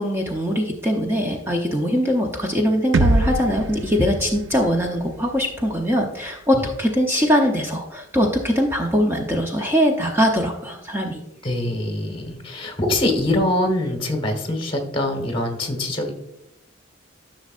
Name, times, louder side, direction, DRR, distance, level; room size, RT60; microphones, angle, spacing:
voice 1, 0.0-11.2, equal, 10° right, 1 dB, 0.7 m, -21 dB
sound 1, 2.9-6.9, right 2 dB, 70° right, 0.6 m, -25 dB
voice 2, 11.4-16.1, left 1 dB, 25° left, 4 dB, 1.4 m, -24 dB
11.0 x 6.2 x 2.5 m, 0.84 s
head